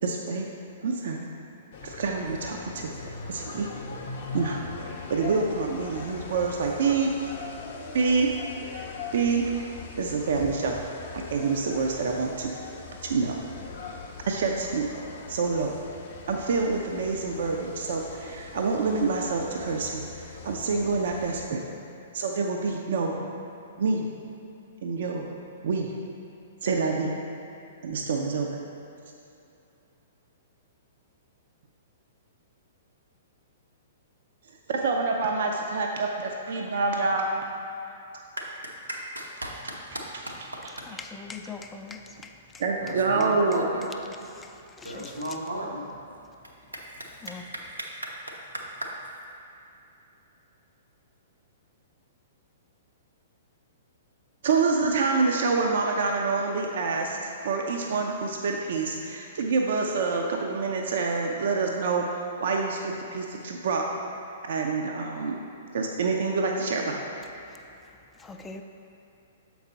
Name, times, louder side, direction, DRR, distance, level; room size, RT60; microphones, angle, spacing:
voice 1, 0.0-0.5 0.8-1.3 1.8-3.7 4.3-4.6 5.1-7.3 7.9-8.3 9.1-9.7 10.0-10.8 11.1-12.5 13.0-13.4 14.3-14.9 15.3-15.7 16.3-21.6 22.1-23.2 23.8-24.1 24.8-25.3 25.6-25.9 26.6-27.1 27.8-28.5 34.7-37.3 42.6-43.7 54.4-63.8 64.5-65.4 65.7-67.0, right 4 dB, 55° right, 1 dB, 0.5 m, -27 dB
sound 1, 1.7-21.5, left 4 dB, 45° left, 0.7 m, -40 dB
voice 2, 38.4-40.9 42.8-44.0 44.8-45.9 46.7-49.0, right 1 dB, 80° right, -2 dB, 1.0 m, -36 dB
voice 3, 41.0-42.0 44.4-44.5 44.8-45.1 47.2-47.4 68.2-68.6, left 4 dB, 15° left, 4 dB, 0.3 m, -40 dB
7.1 x 4.6 x 3.9 m, 2.7 s
figure-of-eight pair, 110°, 0 cm